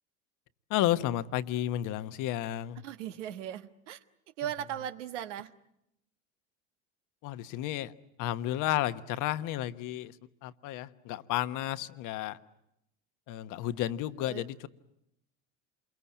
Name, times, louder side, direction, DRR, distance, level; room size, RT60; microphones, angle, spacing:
voice 1, 0.7-2.8 7.2-7.9 8.2-10.2 10.4-12.4 13.3-14.7, left 13 dB, 60° left, 12 dB, 1.2 m, -32 dB
voice 2, 2.8-4.0 4.4-5.5 14.2-14.4, right 10 dB, 85° right, 9 dB, 1.4 m, -38 dB
28.0 x 23.0 x 8.6 m, 0.81 s
supercardioid pair, 90°, 35 cm